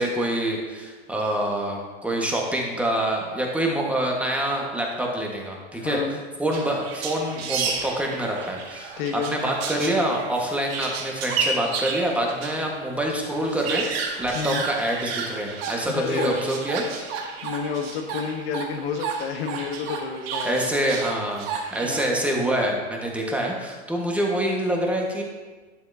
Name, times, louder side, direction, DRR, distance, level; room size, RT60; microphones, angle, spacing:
voice 1, 0.0-6.0 6.4-13.9 14.2-16.8 20.4-25.2, right 1 dB, 5° right, -1 dB, 1.4 m, -26 dB
voice 2, 5.7-6.2 9.0-9.3 14.3-14.6 15.9-16.4 17.4-20.7 21.8-22.1, left 6 dB, 60° left, 5 dB, 1.2 m, -30 dB
sound 1, 6.5-12.7 13.0-13.1 13.3-22.1, right 5 dB, 60° right, 1.5 m, -32 dB
11.5 x 7.1 x 2.7 m, 1.3 s
hypercardioid pair, 115°, 33 cm